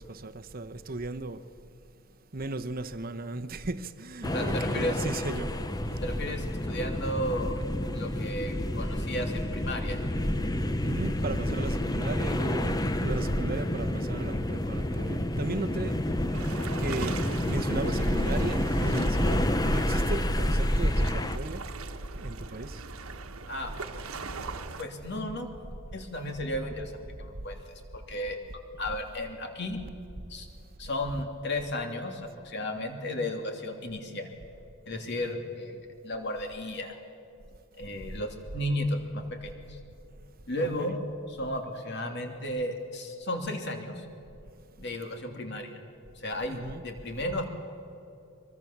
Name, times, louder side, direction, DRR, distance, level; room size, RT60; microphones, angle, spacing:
voice 1, 0.0-1.4 2.3-5.5 9.0-9.1 10.8-16.0 16.8-21.6 22.2-22.8 40.6-40.9 46.5-46.8, right 2 dB, 45° right, 0.9 m, -36 dB
sound 1, 4.2-21.4, left 1 dB, 20° left, 0.8 m, -29 dB
voice 2, 4.3-5.0 6.0-7.6 7.9-10.0 23.5-23.7 24.8-25.5 25.9-27.6 27.9-28.4 28.8-29.8 30.3-30.5 30.8-34.3 34.9-35.8 36.0-37.0 37.8-39.8 40.5-41.0 41.3-44.1 44.8-45.8 46.1-47.4, left 1 dB, 55° left, 2.9 m, -34 dB
sound 2, 16.3-24.8, right 3 dB, 85° right, 1.4 m, -39 dB
23.5 x 23.5 x 7.3 m
head